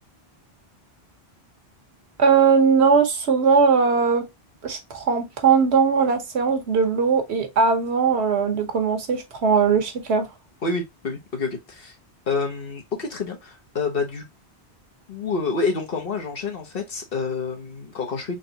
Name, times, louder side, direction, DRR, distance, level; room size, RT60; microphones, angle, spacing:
voice 1, 2.2-4.3 4.6-10.3, right 5 dB, 85° right, 1.2 m, -19 dB
voice 2, 10.6-11.9 12.3-14.3 15.1-18.3, left 4 dB, 60° left, 1.3 m, -28 dB
3.9 x 3.3 x 2.8 m
omnidirectional pair, 1.1 m